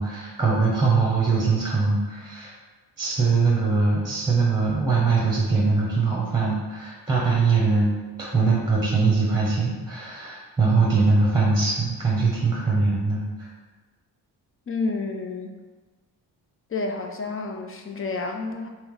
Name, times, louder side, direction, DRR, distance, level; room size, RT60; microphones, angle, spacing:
voice 1, 0.0-2.5 3.0-7.9 8.2-13.5, right 4 dB, 10° right, -4 dB, 1.0 m, -22 dB
voice 2, 14.7-15.5 16.7-18.7, left 3 dB, 30° left, 3 dB, 0.5 m, -29 dB
3.4 x 3.1 x 3.2 m, 1.3 s
supercardioid pair, 55°, 44 cm